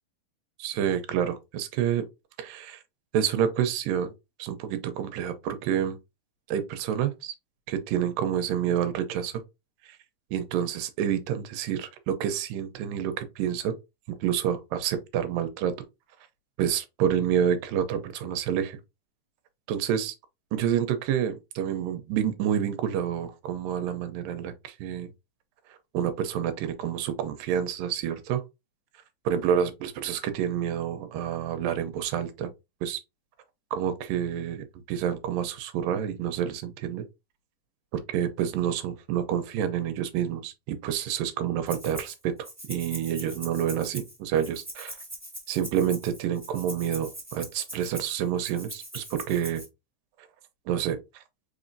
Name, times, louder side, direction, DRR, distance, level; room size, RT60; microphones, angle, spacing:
voice 1, 0.6-2.1 2.4-2.8 3.1-4.1 4.4-6.0 6.5-7.3 7.7-9.4 10.3-13.8 14.1-15.7 16.6-18.8 19.7-20.2 20.5-25.1 25.9-28.4 29.3-32.5 32.8-33.0 33.7-37.1 37.9-42.3 42.7-45.0 45.5-49.6 50.7-51.2, right 9 dB, 80° right, 2.4 m, -28 dB
Rattle (instrument), 41.7-42.2 42.4-49.7, right 1 dB, 5° right, 1.6 m, -42 dB
5.0 x 4.1 x 2.6 m
omnidirectional pair, 4.0 m